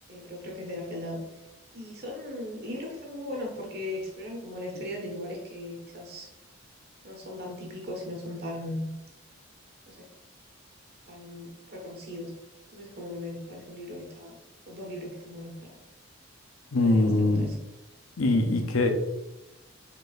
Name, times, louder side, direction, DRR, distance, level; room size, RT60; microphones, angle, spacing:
voice 1, 0.1-1.2 1.7-6.3 7.0-8.9 9.9-10.1 11.1-12.3 12.7-14.4 14.7-15.7 16.8-17.5, left 1 dB, 50° right, 0 dB, 1.3 m, -38 dB
voice 2, 16.7-17.5 18.2-18.9, left 2 dB, 75° left, 5 dB, 0.7 m, -23 dB
5.3 x 4.1 x 2.5 m, 0.92 s
head